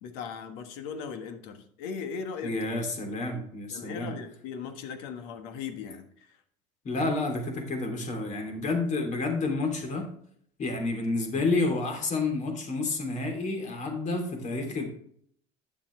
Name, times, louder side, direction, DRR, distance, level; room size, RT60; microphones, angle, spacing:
voice 1, 0.0-2.7 3.7-6.4, left 6 dB, 70° left, 7 dB, 1.4 m, -38 dB
voice 2, 2.4-4.1 6.8-10.0 10.6-14.8, left 3 dB, 45° left, 4 dB, 2.9 m, -29 dB
10.0 x 7.1 x 3.2 m, 0.63 s
supercardioid pair, 90°, 17 cm